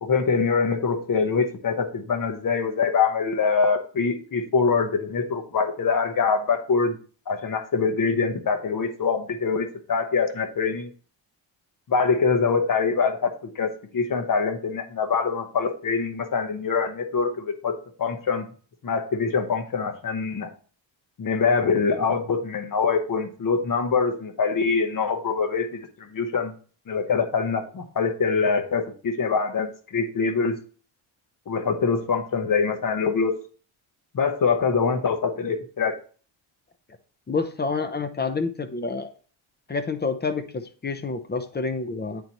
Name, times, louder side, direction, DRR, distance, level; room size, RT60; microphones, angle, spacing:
voice 1, 0.0-7.0 7.3-10.9 11.9-18.5 18.8-20.5 21.2-26.5 26.9-30.6 31.5-33.3 34.1-36.0, left 5 dB, 45° left, 5 dB, 1.1 m, -24 dB
voice 2, 37.3-39.1 39.7-42.2, left 4 dB, 20° left, 10 dB, 0.6 m, -28 dB
9.0 x 4.1 x 3.0 m, 0.40 s
cardioid pair, 130°, 47 cm